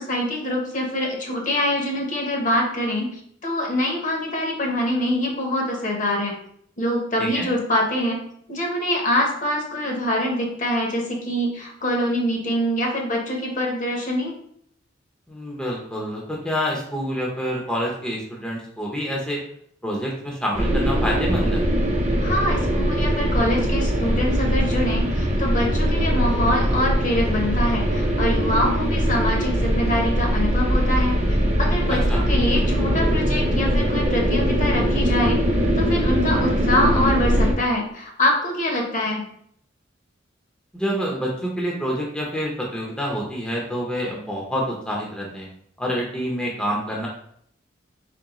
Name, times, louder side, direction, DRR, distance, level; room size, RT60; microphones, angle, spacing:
voice 1, 0.0-6.3 6.8-8.2 8.5-14.3 22.2-31.2 31.6-35.4 35.8-39.2, left 1 dB, 40° left, 0 dB, 0.9 m, -24 dB
voice 2, 15.3-19.4 19.8-21.6 31.9-32.2 40.7-45.5 45.8-47.1, equal, 5° left, -3 dB, 0.6 m, -27 dB
sound 1, 20.5-37.5, equal, 35° right, 0.7 m, -21 dB
3.6 x 3.2 x 3.0 m, 0.66 s
head